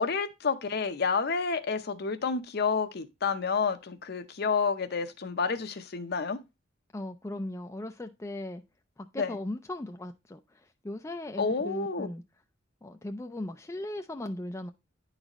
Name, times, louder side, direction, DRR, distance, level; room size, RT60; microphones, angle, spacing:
voice 1, 0.0-6.4 9.2-9.4 11.4-12.1, left 5 dB, 55° left, 0.7 m, -29 dB
voice 2, 6.9-8.6 9.0-10.4 10.8-12.2 12.8-14.7, left 1 dB, 15° left, 0.4 m, -37 dB
9.8 x 4.0 x 2.9 m
head